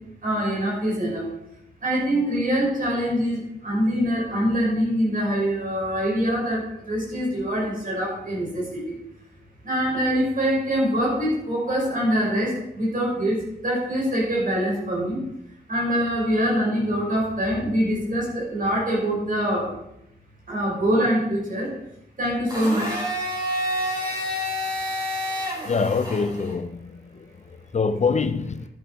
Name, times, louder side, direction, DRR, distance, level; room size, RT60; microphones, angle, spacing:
voice 1, 0.2-1.3 1.8-8.9 9.6-15.2 15.7-19.7 20.5-21.7 22.2-23.0, equal, 50° right, -3 dB, 6.2 m, -24 dB
Domestic sounds home sounds, 22.5-26.5, equal, 25° right, 5.7 m, -28 dB
voice 2, 25.6-27.0 27.7-28.7, left 5 dB, 40° left, 11 dB, 0.5 m, -24 dB
11.5 x 11.0 x 4.9 m, 0.82 s
wide cardioid pair, 135°, 18 cm